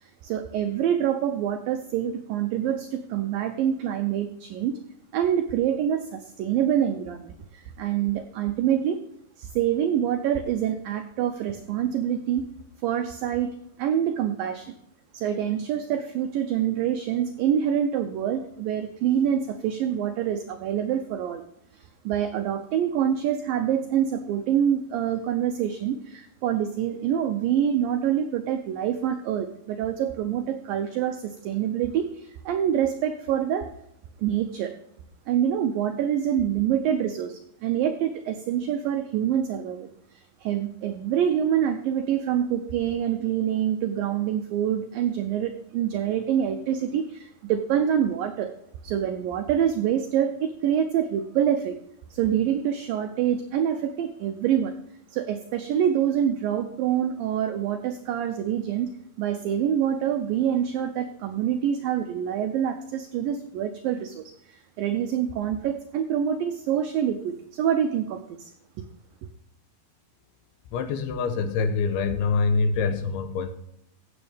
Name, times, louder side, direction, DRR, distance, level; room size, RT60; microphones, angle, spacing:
voice 1, 0.0-4.8 5.1-9.0 9.4-12.5 12.8-14.8 15.1-21.4 21.7-33.7 34.2-34.7 35.3-48.5 48.8-51.8 52.1-54.7 55.1-68.5, right 9 dB, 85° right, 7 dB, 2.0 m, -26 dB
voice 2, 70.7-73.5, left 4 dB, 80° left, 9 dB, 2.6 m, -25 dB
16.0 x 7.2 x 3.4 m, 0.73 s
omnidirectional pair, 4.8 m